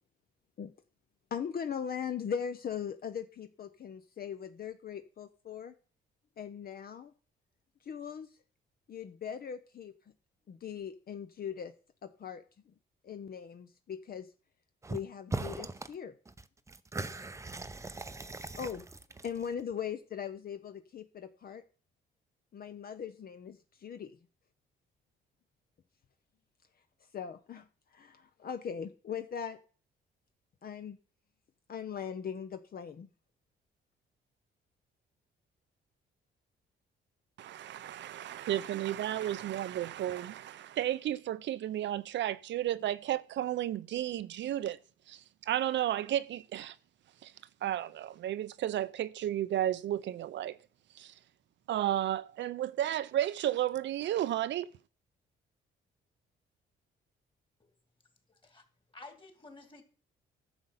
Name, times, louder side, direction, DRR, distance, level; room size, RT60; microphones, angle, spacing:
voice 1, 1.3-5.7 6.4-7.1 7.8-8.3 8.9-9.9 10.5-11.7 12.0-12.7 13.0-14.3 14.9-16.1 18.6-18.8 19.2-21.6 22.5-24.2 27.1-29.6 30.6-31.0 31.7-33.1, left 7 dB, 50° left, 0.8 m, -40 dB
sound 1, 14.8-15.0 15.3-15.9 16.3-19.6, right 2 dB, 15° right, 0.6 m, -40 dB
voice 2, 37.4-44.8 45.1-46.8 47.2-47.3 47.6-50.6 50.9-51.1 51.7-54.7, right 12 dB, 65° right, 0.5 m, -33 dB
voice 3, 58.3-58.6 58.9-59.8, left 2 dB, 25° left, 2.6 m, -52 dB
11.5 x 6.7 x 5.7 m
cardioid pair, 90°, 20 cm